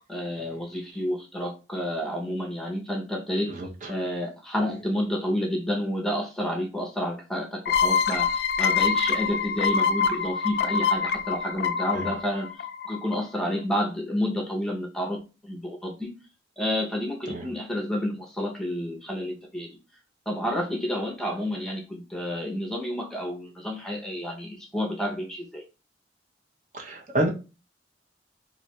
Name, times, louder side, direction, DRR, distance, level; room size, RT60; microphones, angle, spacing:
voice 1, 0.1-3.5 3.9-16.1 16.6-19.7 20.3-25.6, equal, 5° left, 1 dB, 0.7 m, -30 dB
voice 2, 3.5-3.9 11.9-12.1 17.3-17.4 26.7-27.3, right 1 dB, 45° right, 0 dB, 0.7 m, -29 dB
sound 1, 7.7-13.1, left 6 dB, 65° left, 0.3 m, -25 dB
2.7 x 2.4 x 4.1 m, 0.31 s
head